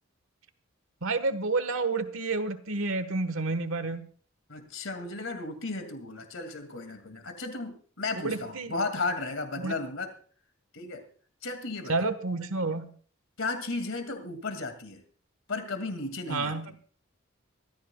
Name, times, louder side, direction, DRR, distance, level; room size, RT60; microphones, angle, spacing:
voice 1, 1.0-4.1 8.2-8.7 9.6-9.7 11.9-12.9 16.3-16.7, right 3 dB, 80° right, 12 dB, 1.4 m, -30 dB
voice 2, 4.5-10.1 10.7-11.1 11.4-11.9 13.4-15.0 15.5-16.6, left 3 dB, 70° left, 8 dB, 2.3 m, -34 dB
24.0 x 14.0 x 2.3 m, 0.43 s
head